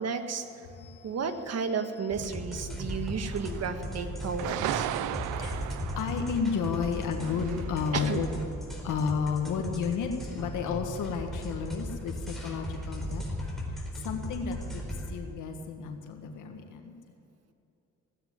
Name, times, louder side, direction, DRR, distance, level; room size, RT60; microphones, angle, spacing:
voice 1, 0.0-0.7 1.0-4.9 7.9-8.2, right 5 dB, 55° right, 7 dB, 1.5 m, -33 dB
voice 2, 0.7-2.1 2.7-3.2 3.4-3.6 4.8-8.4 8.8-13.3 14.0-16.9, left 6 dB, 85° left, 4 dB, 1.7 m, -33 dB
sound 1, 2.1-15.1, equal, ahead, 4.1 m, -37 dB
sound 2, 3.3-4.1 4.4-8.4, right 13 dB, 90° right, 0.5 m, -36 dB
16.5 x 9.2 x 9.3 m, 2.7 s
cardioid pair, 90°, 30 cm